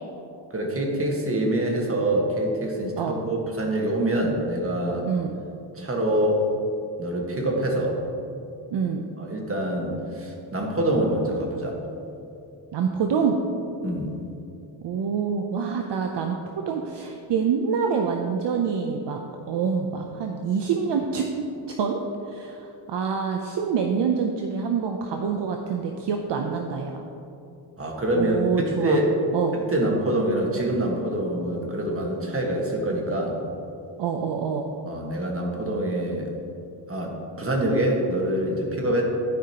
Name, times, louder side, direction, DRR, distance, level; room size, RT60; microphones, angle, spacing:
voice 1, 0.5-5.1 5.7-6.4 7.0-8.0 9.2-11.8 13.8-14.1 27.8-29.1 29.5-33.3 34.9-36.3 36.9-39.0, right 1 dB, 25° right, -1 dB, 1.5 m, -25 dB
voice 2, 8.7-9.0 12.7-13.4 14.8-19.2 19.5-21.3 21.7-22.0 22.3-27.0 28.1-29.0 29.3-29.6 34.0-34.7, right 6 dB, 60° right, 3 dB, 0.6 m, -26 dB
12.5 x 5.0 x 2.9 m, 2.7 s
cardioid pair, 85°, 50 cm